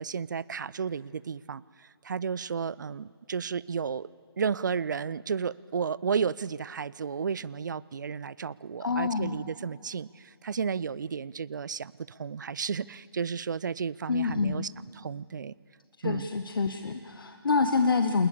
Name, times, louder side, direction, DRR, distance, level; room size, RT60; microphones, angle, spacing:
voice 1, 0.0-4.1 4.4-15.5 16.0-16.3, right 6 dB, 45° right, 21 dB, 0.5 m, -33 dB
voice 2, 8.8-9.4 14.1-14.6 16.0-18.3, left 4 dB, 60° left, 7 dB, 1.5 m, -27 dB
28.5 x 20.5 x 6.9 m, 2.1 s
figure-of-eight pair, 145°, 13 cm